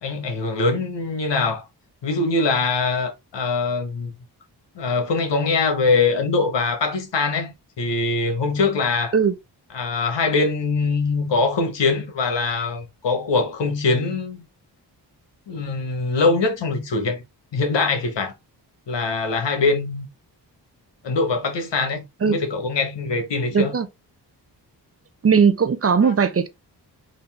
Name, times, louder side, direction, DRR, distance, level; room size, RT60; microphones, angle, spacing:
voice 1, 0.0-1.6 2.0-4.1 4.7-9.1 9.7-14.4 15.5-17.2 17.5-18.3 18.9-20.1 21.0-23.7 26.0-26.1, left 3 dB, 90° left, 1.2 m, -23 dB
voice 2, 23.5-23.9 25.2-26.5, right 6 dB, 35° right, 0.5 m, -18 dB
3.9 x 2.7 x 3.4 m
cardioid pair, 80°, 42 cm